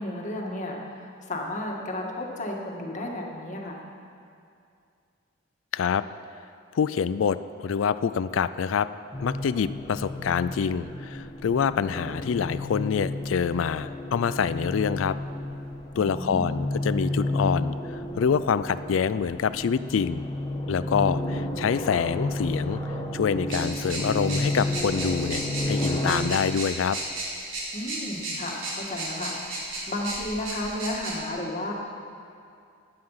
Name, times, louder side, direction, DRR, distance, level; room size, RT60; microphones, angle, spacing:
voice 1, 0.0-3.8 15.9-16.6 27.7-31.7, left 1 dB, 40° left, 0 dB, 1.8 m, -33 dB
voice 2, 5.7-6.0 6.7-8.9 9.2-15.2 16.0-20.3 20.7-22.8 23.1-27.0, left 6 dB, 90° left, 14 dB, 0.4 m, -26 dB
sound 1, 9.1-26.1, left 1 dB, 20° left, 1.2 m, -32 dB
sound 2, 23.5-31.2, right 1 dB, 75° right, 3.9 m, -34 dB
15.5 x 10.5 x 5.7 m, 2.4 s
head